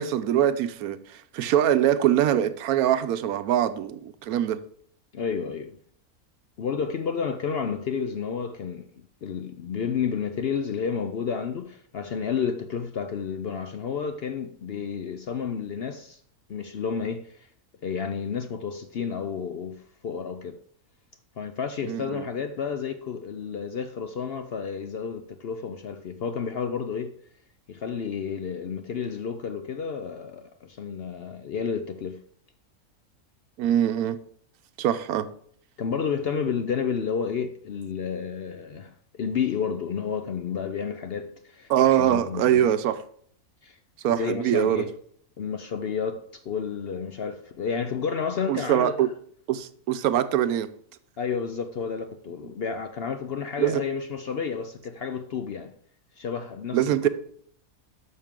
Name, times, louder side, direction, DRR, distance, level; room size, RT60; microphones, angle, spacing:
voice 1, 0.0-4.6 21.8-22.3 33.6-34.2 34.8-35.3 41.7-43.0 44.0-44.8 48.5-49.1 49.5-50.7 53.6-53.8 56.7-57.1, right 11 dB, 85° right, 1.1 m, -23 dB
voice 2, 5.1-5.8 6.6-8.9 9.2-16.2 16.5-17.5 17.8-20.6 21.4-27.1 27.7-32.2 35.8-41.7 42.0-42.6 43.6-43.8 44.1-44.9 45.4-49.0 51.2-55.7 56.2-57.1, left 6 dB, 60° left, 0.6 m, -31 dB
12.0 x 6.5 x 3.7 m
omnidirectional pair, 1.5 m